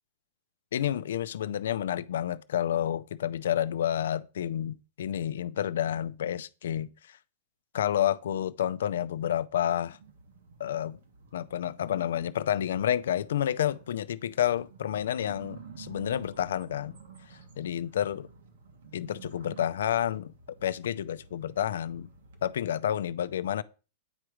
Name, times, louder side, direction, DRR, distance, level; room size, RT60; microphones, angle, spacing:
voice 1, 0.7-7.2 7.7-10.0 10.6-11.0 11.3-16.9 17.6-18.2 18.9-20.3 20.6-22.1 22.4-23.6, left 10 dB, 75° left, 0.4 m, -30 dB
sound 1, 9.9-22.7, right 5 dB, 65° right, 1.4 m, -52 dB
8.8 x 4.9 x 3.1 m
supercardioid pair, 180°, 0 cm